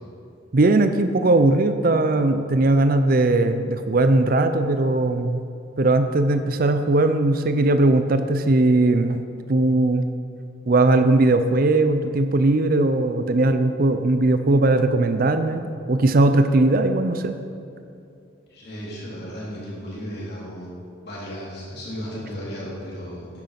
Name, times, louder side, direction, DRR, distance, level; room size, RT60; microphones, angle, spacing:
voice 1, 0.5-5.5 5.8-9.2 9.5-10.1 10.7-17.3, right 2 dB, 50° right, 9 dB, 0.5 m, -19 dB
voice 2, 18.5-20.7 21.0-23.4, equal, 55° left, -6 dB, 3.3 m, -35 dB
10.5 x 9.0 x 5.9 m, 2.6 s
head